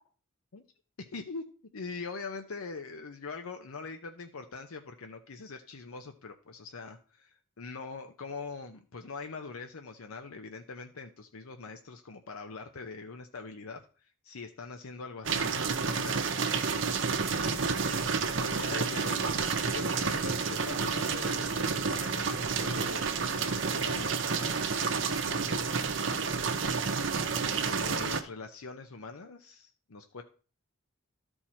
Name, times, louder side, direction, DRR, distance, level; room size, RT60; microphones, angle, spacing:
voice 1, 1.0-1.5 1.7-7.3 7.6-13.9 14.2-16.2 17.5-26.5 27.3-30.2, left 4 dB, 90° left, 6 dB, 0.7 m, -43 dB
sound 1, 15.2-28.2, right 5 dB, 60° right, 0.8 m, -30 dB
12.5 x 4.5 x 4.3 m, 0.38 s
head